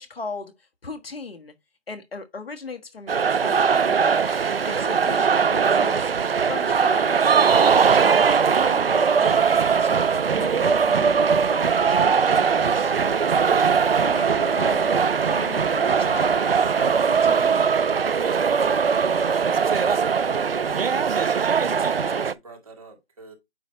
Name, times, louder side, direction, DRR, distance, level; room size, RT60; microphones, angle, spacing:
voice 1, 0.0-1.5 1.9-4.3 4.7-6.1 6.5-8.4 8.6-9.4 9.8-12.9 13.4-14.9 15.3-16.5 16.8-17.6, left 4 dB, 60° left, 1.5 m, -38 dB
sound 1, 3.1-22.3, right 6 dB, 60° right, 0.6 m, -20 dB
voice 2, 19.5-23.4, right 4 dB, 35° right, 2.2 m, -42 dB
9.2 x 3.2 x 4.3 m
figure-of-eight pair, 170°, 33 cm